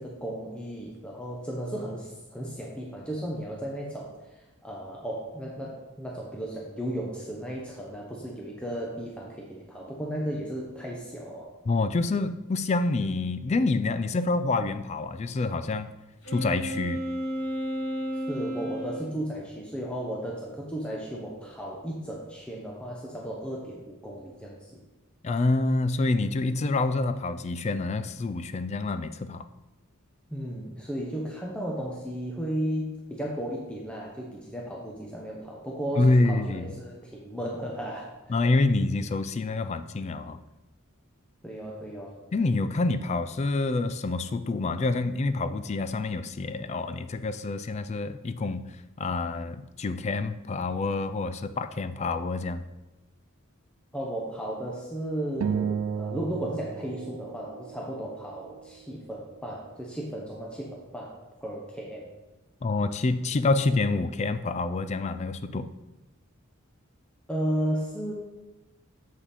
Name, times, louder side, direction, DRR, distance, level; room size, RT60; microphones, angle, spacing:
voice 1, 0.0-11.5 18.3-24.8 30.3-38.4 41.4-42.2 53.9-62.1 67.3-68.1, right 1 dB, 5° left, -3 dB, 0.8 m, -35 dB
voice 2, 11.7-15.9 16.3-17.0 25.2-29.5 36.0-36.7 38.3-40.4 42.3-52.6 62.6-65.7, left 3 dB, 30° left, 11 dB, 0.3 m, -27 dB
Wind instrument woodwind instrument, 16.2-19.1, equal, 85° left, 2.1 m, -32 dB
sound 1, 55.4-58.0, right 7 dB, 65° right, 0.3 m, -32 dB
7.0 x 5.8 x 4.1 m, 1.0 s
head